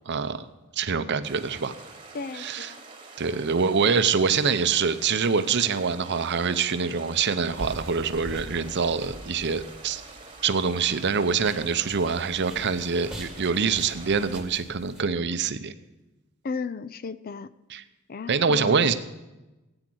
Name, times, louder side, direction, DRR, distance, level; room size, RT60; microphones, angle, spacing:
voice 1, 0.1-0.5 0.8-1.7 2.4-2.7 3.2-10.0 10.4-15.7 17.7-17.8 18.3-18.9, right 5 dB, 50° right, 11 dB, 0.7 m, -25 dB
sound 1, 1.2-14.4, right 3 dB, 25° right, 1.4 m, -46 dB
voice 2, 2.1-2.8 16.4-17.6 18.1-18.9, left 5 dB, 40° left, 15 dB, 0.4 m, -35 dB
sound 2, 7.5-15.0, equal, 5° right, 1.7 m, -44 dB
14.5 x 8.9 x 6.2 m, 1.1 s
head